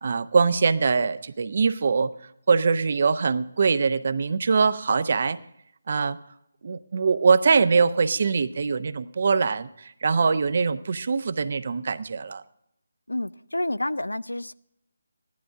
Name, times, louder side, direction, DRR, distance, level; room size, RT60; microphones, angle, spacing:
voice 1, 0.0-2.1 2.5-5.4 5.9-6.2 6.6-12.4, right 5 dB, 50° right, 0.7 m, -23 dB
voice 2, 13.1-14.5, left 1 dB, 80° left, 0.5 m, -29 dB
16.0 x 11.5 x 3.5 m
figure-of-eight pair, 150°, 0 cm